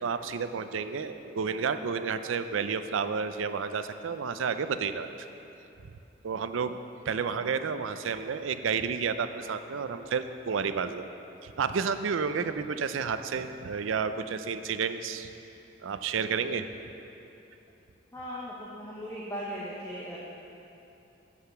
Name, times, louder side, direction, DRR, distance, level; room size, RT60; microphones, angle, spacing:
voice 1, 0.0-5.1 6.2-6.8 7.1-11.1 11.4-15.3 15.8-16.7, right 6 dB, 85° right, 10 dB, 0.4 m, -31 dB
voice 2, 18.1-20.2, equal, 15° left, -7 dB, 0.9 m, -38 dB
8.6 x 7.8 x 5.9 m, 2.9 s
head